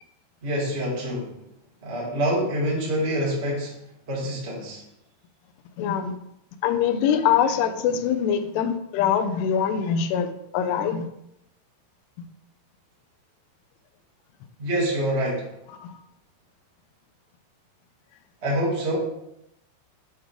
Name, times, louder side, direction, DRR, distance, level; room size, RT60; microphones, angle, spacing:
voice 1, 0.4-1.3 1.8-3.7 4.1-4.8 14.6-15.4 18.4-19.0, equal, 35° right, -5 dB, 1.1 m, -26 dB
voice 2, 5.8-6.2 6.6-11.1 12.2-12.3 15.8-16.0, left 8 dB, 85° left, 7 dB, 2.7 m, -24 dB
7.8 x 3.7 x 4.7 m, 0.80 s
omnidirectional pair, 4.7 m